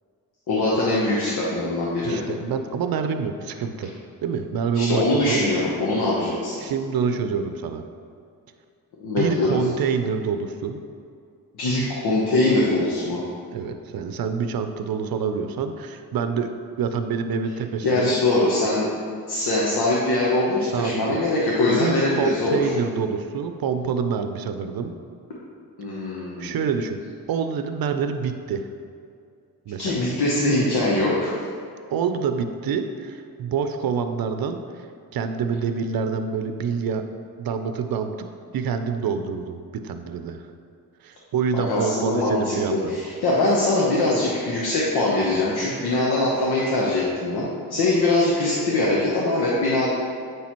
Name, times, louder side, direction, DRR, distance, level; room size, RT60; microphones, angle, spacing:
voice 1, 0.5-2.2 4.7-6.6 9.0-9.6 11.5-13.2 17.8-18.9 19.3-22.7 25.8-26.6 29.8-31.3 41.5-49.9, left 2 dB, 85° left, -6 dB, 1.1 m, -22 dB
voice 2, 2.0-3.9 4.2-5.4 6.6-7.8 9.2-10.8 13.5-16.5 16.8-18.2 20.6-21.2 21.7-24.9 26.4-27.0 27.3-28.7 29.7-30.1 31.9-34.9 35.1-37.0 37.4-38.3 38.5-40.5 41.0-42.9, right 6 dB, 70° right, 8 dB, 0.6 m, -26 dB
8.5 x 3.4 x 4.5 m, 2.4 s
cardioid pair, 55°, 37 cm